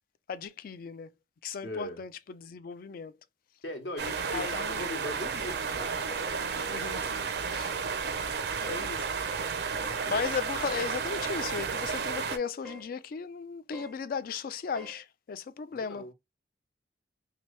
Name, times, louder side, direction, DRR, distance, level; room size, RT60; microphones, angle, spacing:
voice 1, 0.3-1.1 1.4-3.1 4.3-4.8 6.6-7.1 7.5-7.7 8.2-9.1 10.1-16.1, left 6 dB, 55° left, 0.3 m, -36 dB
voice 2, 1.6-2.0 3.6-6.7 10.1-10.3 15.8-16.1, left 1 dB, 70° left, 1.0 m, -40 dB
sound 1, 4.0-12.4, right 5 dB, 65° right, 0.5 m, -32 dB
sound 2, 7.4-7.7 8.1-8.3 8.6-8.9 9.3-9.5 9.8-10.1 11.2-11.4 12.6-12.9 13.7-14.0 14.7-15.0, left 1 dB, ahead, 0.5 m, -47 dB
2.9 x 2.6 x 3.1 m
head